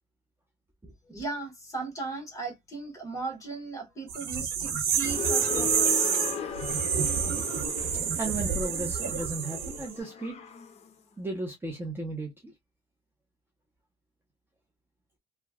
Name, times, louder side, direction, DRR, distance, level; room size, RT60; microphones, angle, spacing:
voice 1, 1.1-6.1, right 3 dB, 20° left, 1.4 m, -37 dB
sound 1, 4.1-9.9, right 7 dB, 60° right, 0.9 m, -28 dB
sound 2, 5.0-10.9, left 6 dB, 40° left, 0.7 m, -37 dB
voice 2, 8.2-10.4 11.2-12.5, right 2 dB, 15° right, 0.7 m, -35 dB
3.0 x 2.3 x 2.2 m
cardioid pair, 110°, 17 cm